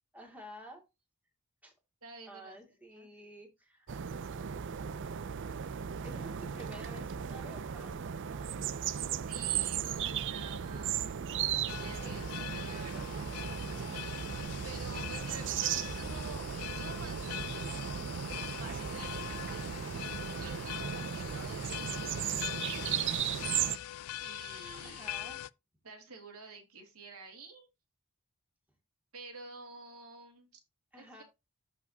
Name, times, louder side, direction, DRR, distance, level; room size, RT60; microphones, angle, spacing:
voice 1, 0.1-0.8 1.6-1.7 2.3-3.9 6.0-8.0 12.7-13.0 15.2-15.4 24.8-25.4 30.9-31.2, equal, 5° right, 0 dB, 2.3 m, -51 dB
voice 2, 2.0-2.6 2.9-3.1 9.3-11.0 11.8-13.1 13.5-14.0 14.6-16.5 16.7-17.4 18.6-20.1 20.4-23.9 24.1-25.1 25.8-27.7 29.1-30.6 31.0-31.2, right 3 dB, 75° right, 3 dB, 2.5 m, -50 dB
sound 1, 3.9-23.8, right 8 dB, 55° right, 0.4 m, -36 dB
sound 2, 5.7-21.0, right 5 dB, 30° right, 0.9 m, -57 dB
sound 3, 11.7-25.5, left 13 dB, 80° left, 0.4 m, -43 dB
14.0 x 4.7 x 2.8 m, 0.24 s
head